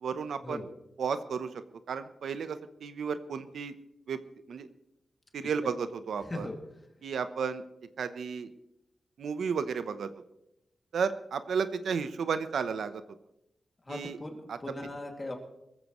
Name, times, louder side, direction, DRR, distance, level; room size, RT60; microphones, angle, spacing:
voice 1, 0.0-0.6 1.0-1.5 1.9-3.7 4.1-4.2 4.5-4.7 5.3-6.5 7.0-7.6 8.0-8.5 9.2-10.1 10.9-13.0 13.9-14.2 14.5-14.6, right 6 dB, 80° right, 11 dB, 0.8 m, -33 dB
voice 2, 6.2-6.6 13.8-15.3, left 2 dB, 20° left, 2 dB, 2.4 m, -39 dB
23.0 x 14.5 x 3.1 m, 0.84 s
wide cardioid pair, 115°, 0 cm